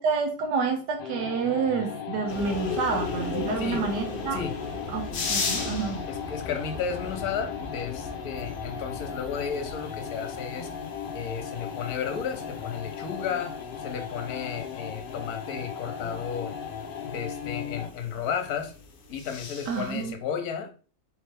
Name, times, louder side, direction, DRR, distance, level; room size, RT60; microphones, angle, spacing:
voice 1, 0.0-4.4 4.9-6.0 19.7-20.1, right 5 dB, 85° right, 3 dB, 1.5 m, -28 dB
sound 1, 1.0-18.0, left 6 dB, 85° left, 0.4 m, -37 dB
sound 2, 2.3-20.1, left 4 dB, 50° left, 1.0 m, -38 dB
voice 2, 6.1-10.7 11.1-13.5 13.8-16.5 17.0-18.7 19.1-20.7, left 7 dB, 70° left, 6 dB, 1.3 m, -33 dB
4.6 x 3.4 x 3.3 m, 0.38 s
omnidirectional pair, 1.8 m